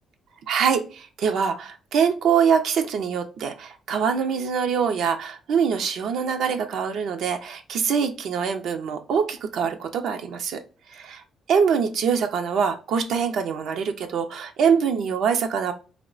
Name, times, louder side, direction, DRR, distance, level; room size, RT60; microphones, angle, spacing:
voice 1, 0.5-10.6 11.5-15.7, right 6 dB, 75° right, 6 dB, 0.4 m, -24 dB
2.7 x 2.0 x 2.4 m, 0.35 s
cardioid pair, 90°, 0 cm